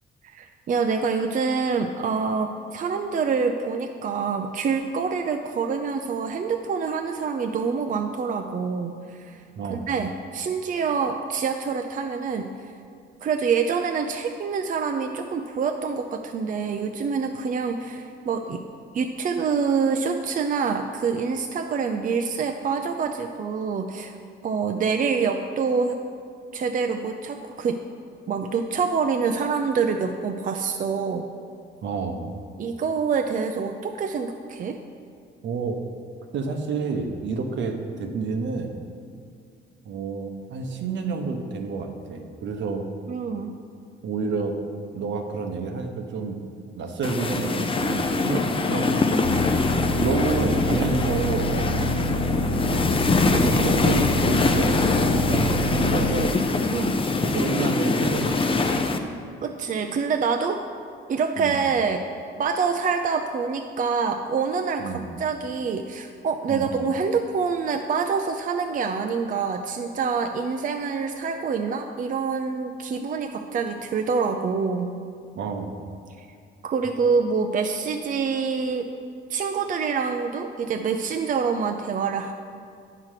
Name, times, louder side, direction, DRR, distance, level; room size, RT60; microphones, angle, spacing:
voice 1, 0.2-9.4 9.7-12.5 13.2-18.6 18.9-24.1 24.4-26.0 26.5-27.8 28.3-31.3 32.6-34.8 43.1-43.6 56.7-57.0 59.4-60.6 61.1-62.0 62.4-74.9 76.2-76.3 76.6-78.9 79.3-82.3, right 5 dB, 45° right, 5 dB, 0.5 m, -26 dB
voice 2, 9.6-9.9 31.8-32.3 35.4-35.8 36.3-38.8 39.8-42.9 44.0-44.6 44.9-46.4 46.7-49.0 50.0-52.0 52.5-52.8 53.2-56.4 57.2-58.8 61.4-61.6 64.8-65.0 66.5-66.7 75.3-75.7, right 4 dB, 70° right, 5 dB, 0.9 m, -29 dB
sound 1, 47.0-59.0, left 3 dB, 25° left, 0.6 m, -23 dB
sound 2, 49.2-56.3, left 1 dB, 80° left, 0.6 m, -27 dB
8.8 x 5.9 x 4.8 m, 2.3 s
cardioid pair, 90°, 20 cm